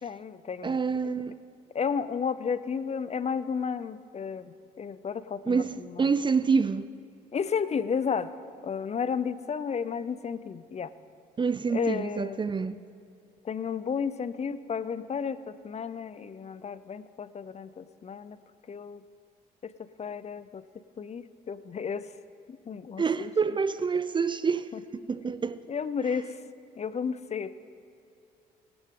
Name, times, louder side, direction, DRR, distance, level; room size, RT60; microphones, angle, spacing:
voice 1, 0.0-1.1 1.7-6.1 7.3-8.3 8.6-10.9 11.7-12.4 13.4-18.4 18.7-19.0 19.6-20.6 21.0-22.1 22.5-23.6 24.7-24.8 25.7-26.4 26.8-27.6, left 6 dB, 40° left, 0.6 m, -33 dB
voice 2, 0.6-1.4 5.5-6.9 11.4-12.8 23.0-24.7 25.1-25.6, right 5 dB, 25° right, 0.5 m, -27 dB
20.5 x 12.0 x 3.8 m
supercardioid pair, 70°, 18 cm